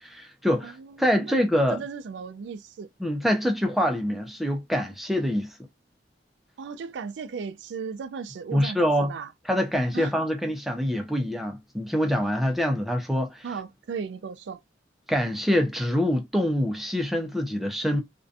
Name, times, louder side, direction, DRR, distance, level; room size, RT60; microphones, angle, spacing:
voice 1, 0.0-1.8 3.0-5.5 8.5-9.1 9.4-13.5 15.1-18.0, equal, ahead, 0.4 m, -25 dB
voice 2, 0.6-1.3 1.7-2.9 6.6-9.3 9.9-10.1 13.4-14.6, right 5 dB, 80° right, 0.4 m, -36 dB
2.4 x 2.2 x 2.6 m
head